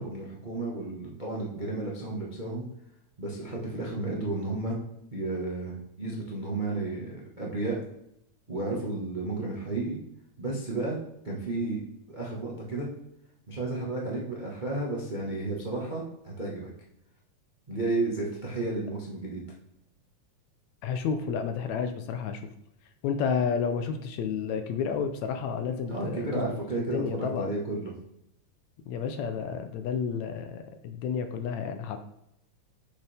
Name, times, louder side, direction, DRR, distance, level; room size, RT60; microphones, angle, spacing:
voice 1, 0.0-2.6 3.2-4.8 5.1-7.8 8.5-10.0 10.4-11.0 11.2-11.8 12.1-12.9 13.5-16.7 17.7-19.4 25.9-27.9, right 2 dB, 40° right, -3 dB, 0.6 m, -32 dB
voice 2, 20.8-22.4 23.0-26.6 26.9-27.5 28.9-32.0, left 6 dB, 75° left, 7 dB, 1.9 m, -31 dB
8.3 x 6.7 x 3.4 m, 0.79 s
omnidirectional pair, 3.5 m